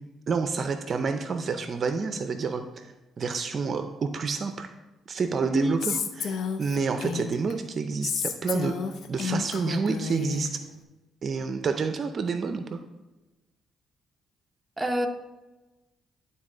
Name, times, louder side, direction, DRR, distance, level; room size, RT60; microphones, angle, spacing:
voice 1, 0.3-2.9 3.2-4.7 5.1-8.8 9.1-10.6 11.2-12.8, right 5 dB, 50° right, 8 dB, 0.5 m, -29 dB
voice 2, 5.4-5.8 14.8-15.1, right 1 dB, 10° right, 3 dB, 0.8 m, -26 dB
Female speech woman speaking, 5.8-7.5 8.0-10.5, left 6 dB, 70° left, 0.7 m, -31 dB
11.0 x 4.0 x 3.8 m, 1.1 s
cardioid pair, 90°, 0 cm